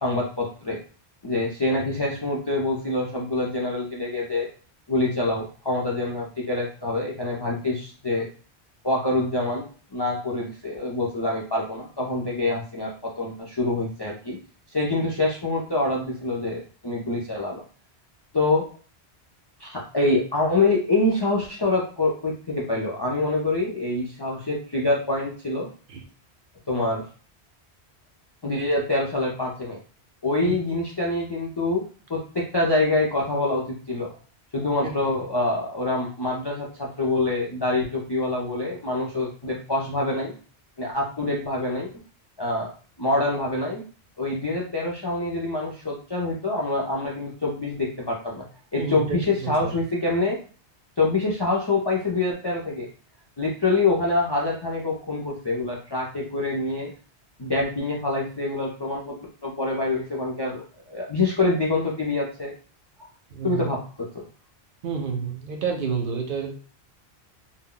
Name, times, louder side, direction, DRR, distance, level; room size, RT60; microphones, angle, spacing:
voice 1, 0.0-0.8 1.2-4.5 4.9-8.3 8.8-9.7 9.9-14.4 14.7-17.6 18.3-18.6 19.6-25.7 26.7-27.0 28.4-29.8 30.2-31.8 32.1-34.1 34.5-40.4 40.8-41.9 42.4-42.7 43.0-43.8 44.2-48.5 48.7-50.4 51.0-52.9 53.4-56.9 57.4-59.2 59.4-62.5 63.4-64.3, left 2 dB, 40° left, -3 dB, 0.3 m, -25 dB
voice 2, 48.7-49.7 63.3-63.7 64.8-66.5, right 6 dB, 60° right, 3 dB, 0.7 m, -29 dB
2.2 x 2.1 x 3.7 m, 0.39 s
omnidirectional pair, 1.1 m